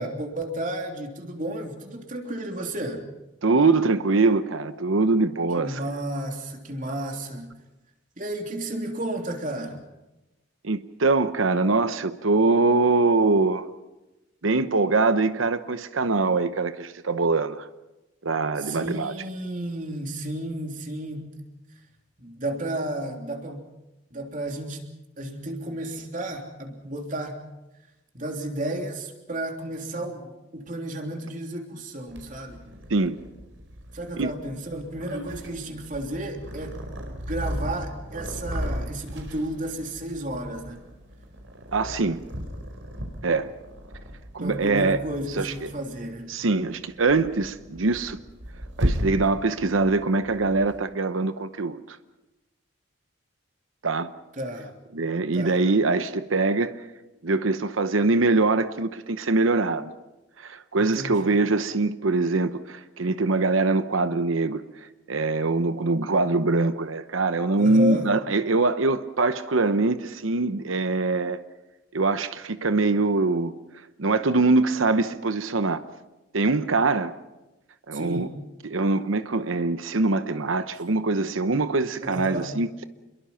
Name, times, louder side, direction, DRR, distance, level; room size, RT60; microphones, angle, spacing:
voice 1, 0.0-3.1 5.5-7.6 8.2-9.8 18.6-21.3 22.2-23.6 24.1-24.9 25.2-27.4 28.1-32.6 33.9-36.8 37.1-40.8 44.4-46.4 54.4-54.7 55.3-55.6 60.8-61.3 67.6-68.1 77.9-78.3 82.0-82.5, right 1 dB, 40° right, 3.2 m, -32 dB
voice 2, 3.4-5.8 10.6-13.7 14.4-17.7 18.2-19.1 32.9-33.1 34.2-34.3 41.7-42.2 43.2-43.5 44.3-45.0 45.4-45.7 46.3-48.2 48.8-52.0 53.8-54.1 54.9-56.7 57.2-59.9 60.4-64.6 65.1-71.4 71.9-73.5 74.0-75.8 76.3-77.1 77.9-78.3 78.6-82.9, right 3 dB, 85° right, 0.9 m, -23 dB
Purr, 32.1-50.8, equal, 70° right, 5.1 m, -36 dB
28.0 x 22.5 x 5.8 m
head